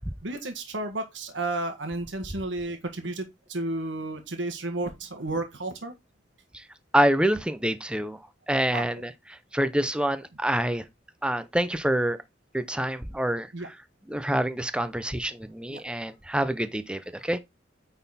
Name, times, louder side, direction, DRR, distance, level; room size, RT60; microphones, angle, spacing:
voice 1, 0.2-5.9 8.7-8.8 13.5-13.7 15.7-15.8, right 2 dB, 90° right, 1.6 m, -32 dB
voice 2, 6.9-8.2 8.5-9.1 9.5-10.8 11.2-12.2 12.5-13.5 14.1-17.4, right 1 dB, 5° right, 0.6 m, -26 dB
9.2 x 4.1 x 4.2 m
head